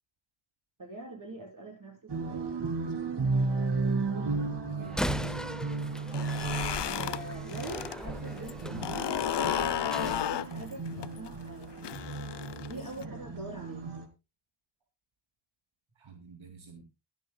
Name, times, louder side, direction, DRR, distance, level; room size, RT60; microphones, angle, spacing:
voice 1, 0.8-2.5 6.8-9.1 10.0-11.7 12.7-13.9, right 2 dB, 45° right, -2 dB, 6.3 m, -43 dB
sound 1, 2.1-14.1, right 4 dB, 60° right, 2.0 m, -34 dB
voice 2, 4.6-5.9 16.0-16.8, right 5 dB, 85° right, 3 dB, 2.5 m, -48 dB
Slam, 4.8-10.2, equal, ahead, 0.5 m, -39 dB
sound 2, 6.0-8.0 8.3-13.0, left 10 dB, 65° left, 0.6 m, -33 dB
23.0 x 9.1 x 2.2 m, 0.26 s
wide cardioid pair, 115°, 46 cm